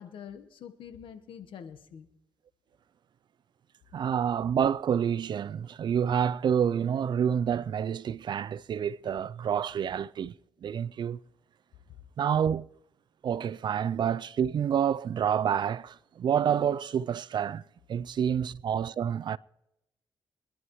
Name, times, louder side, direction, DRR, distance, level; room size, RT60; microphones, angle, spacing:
voice 1, 0.0-2.1, left 8 dB, 85° left, 1.1 m, -45 dB
voice 2, 3.9-10.3 10.6-11.2 12.2-12.7 13.2-17.6 17.9-19.4, right 8 dB, 60° right, 0.4 m, -28 dB
24.0 x 11.0 x 3.1 m
cardioid pair, 80°, 9 cm